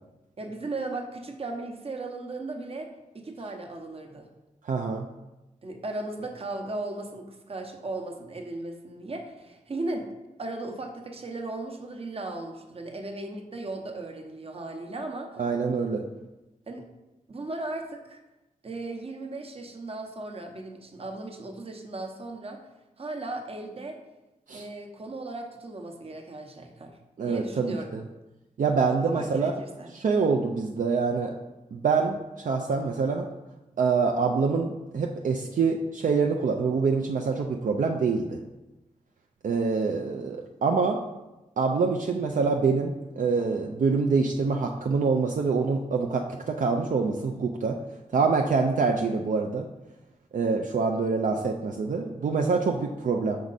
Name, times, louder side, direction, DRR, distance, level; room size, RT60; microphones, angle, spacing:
voice 1, 0.4-2.9 3.1-4.3 5.6-10.1 10.4-15.4 16.7-16.9 17.3-18.2 18.6-22.6 23.0-24.0 24.5-26.9 27.2-27.9 28.9-29.9, right 2 dB, 45° right, 3 dB, 0.8 m, -36 dB
voice 2, 4.6-5.1 15.4-16.0 24.5-24.6 27.2-28.0 28.6-29.5 29.9-31.3 31.7-33.3 33.8-38.4 39.4-41.0 41.6-47.8 48.1-49.7 50.3-53.4, right 4 dB, 65° right, 2 dB, 0.5 m, -25 dB
6.4 x 4.7 x 4.0 m, 1.0 s
wide cardioid pair, 135°, 14 cm